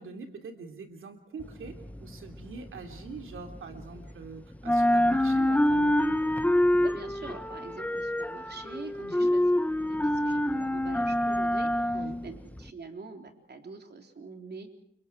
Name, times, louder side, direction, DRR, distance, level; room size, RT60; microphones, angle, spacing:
voice 1, 0.0-6.0 9.0-9.3 11.9-12.2, right 4 dB, 85° right, 5 dB, 3.2 m, -43 dB
sound 1, 1.4-4.3 4.5-12.7, left 1 dB, 5° left, 0.8 m, -26 dB
voice 2, 6.8-9.5 9.8-14.7, right 4 dB, 55° right, 5 dB, 3.8 m, -45 dB
29.5 x 25.0 x 4.7 m, 0.72 s
cardioid pair, 65°, 20 cm